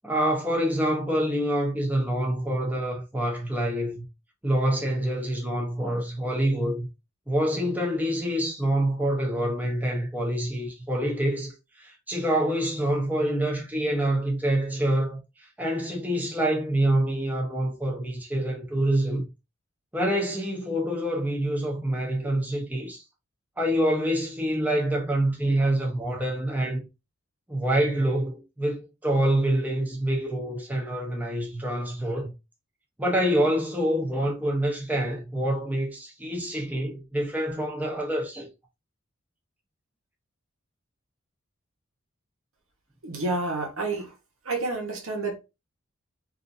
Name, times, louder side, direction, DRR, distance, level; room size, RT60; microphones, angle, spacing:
voice 1, 0.0-4.1 4.4-6.9 7.3-15.2 15.6-19.2 19.9-23.0 23.6-26.8 27.5-32.3 33.0-38.5, right 1 dB, 10° right, 0.8 m, -26 dB
voice 2, 43.0-44.1 44.4-45.4, right 3 dB, 90° right, 1.1 m, -29 dB
3.4 x 2.7 x 2.6 m
head